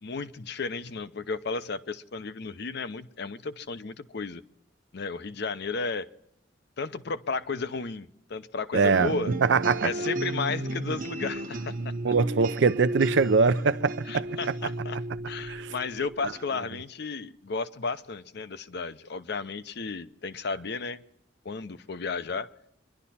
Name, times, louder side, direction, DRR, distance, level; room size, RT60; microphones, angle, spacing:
voice 1, 0.0-4.4 4.9-6.1 6.8-9.3 9.8-11.7 12.1-12.2 14.0-15.0 15.3-21.0 21.4-22.5, left 4 dB, 60° left, 0.7 m, -33 dB
voice 2, 8.7-9.1 9.4-9.9 12.0-14.3 15.5-15.7, right 4 dB, 65° right, 0.5 m, -22 dB
sound 1, 8.9-16.5, right 1 dB, 45° right, 0.9 m, -34 dB
25.5 x 11.5 x 4.2 m
head